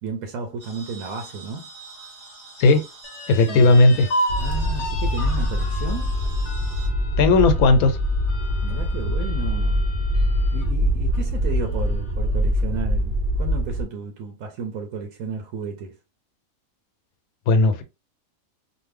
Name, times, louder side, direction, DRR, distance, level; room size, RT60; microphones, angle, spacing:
voice 1, 0.0-1.7 3.5-3.8 4.4-6.2 8.6-9.8 10.5-16.0, right 4 dB, 80° right, 1.1 m, -32 dB
sound 1, 0.6-6.9, right 3 dB, 20° right, 0.9 m, -44 dB
sound 2, 3.0-10.7 11.1-11.2 11.6-12.3, equal, 65° left, 0.9 m, -33 dB
voice 2, 3.3-4.1 7.2-8.0 17.5-17.8, left 3 dB, 90° left, 1.1 m, -15 dB
sound 3, 4.3-13.8, equal, 55° right, 0.8 m, -23 dB
2.6 x 2.5 x 3.2 m
omnidirectional pair, 1.5 m